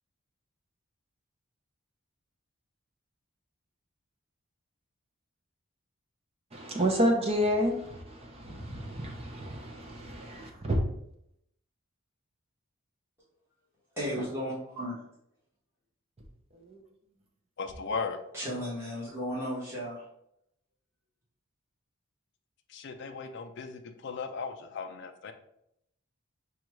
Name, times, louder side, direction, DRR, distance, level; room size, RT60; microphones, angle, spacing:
voice 1, 6.5-10.8 16.7-16.8, equal, 25° right, 0.5 m, -30 dB
voice 2, 14.0-14.9 18.3-20.0, equal, 10° right, 1.3 m, -34 dB
voice 3, 17.6-18.2 22.7-25.3, left 5 dB, 50° left, 0.4 m, -37 dB
5.1 x 2.4 x 3.1 m
head